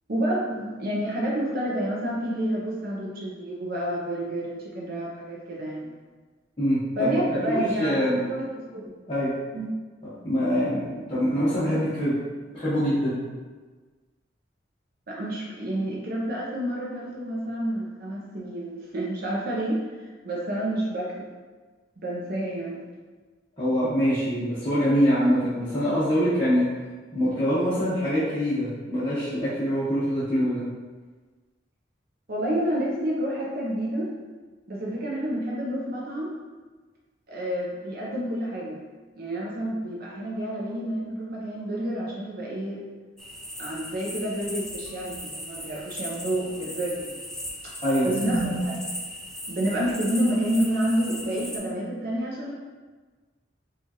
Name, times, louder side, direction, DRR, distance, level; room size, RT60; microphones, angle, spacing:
voice 1, 0.1-5.9 7.0-8.5 8.7-8.9 9.5-9.7 15.1-19.8 20.2-21.2 22.0-22.8 32.3-34.1 34.7-36.3 37.3-38.8 39.2-42.8 43.6-47.2 48.0-48.8 49.5-52.5, right 1 dB, 55° right, -4 dB, 0.6 m, -29 dB
voice 2, 6.6-7.2 7.5-8.2 9.1-9.3 10.2-12.1 12.5-13.2 23.6-26.7 27.1-30.6 47.8-48.1, equal, 25° left, -14 dB, 1.0 m, -24 dB
sound 1, 43.2-51.6, equal, 5° left, 0.4 m, -38 dB
4.5 x 2.4 x 2.8 m, 1.4 s
head